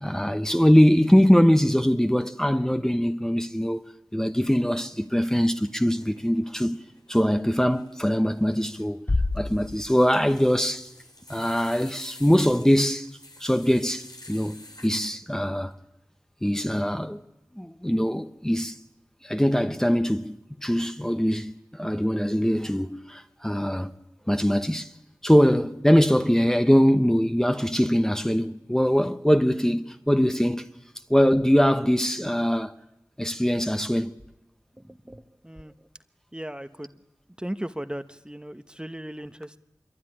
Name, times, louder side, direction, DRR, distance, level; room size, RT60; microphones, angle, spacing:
voice 1, 0.0-3.8 4.1-6.8 7.1-9.0 9.3-10.9 11.3-13.1 13.4-15.8 16.4-17.2 17.6-18.7 19.2-23.9 24.3-24.9 25.2-30.7 31.1-32.7 33.2-34.1, equal, 10° left, 1.1 m, -22 dB
sound 1, 4.4-5.4 5.7-14.9, left 2 dB, 80° left, 4.0 m, -50 dB
Bass drum, 9.1-10.8, left 2 dB, 40° left, 1.2 m, -29 dB
voice 2, 34.8-35.9 36.3-37.0 37.4-39.6, right 1 dB, 15° right, 1.1 m, -37 dB
25.5 x 23.0 x 10.0 m
wide cardioid pair, 50°, 7 cm